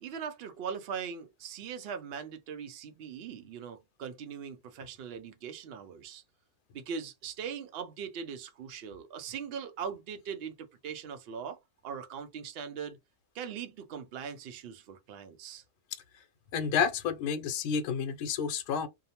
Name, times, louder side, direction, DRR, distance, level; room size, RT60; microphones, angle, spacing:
voice 1, 0.0-6.2 6.7-13.0 13.3-15.6, right 7 dB, 65° right, 0.6 m, -40 dB
voice 2, 16.5-18.9, left 6 dB, 80° left, 1.1 m, -30 dB
2.7 x 2.1 x 2.8 m
omnidirectional pair, 1.6 m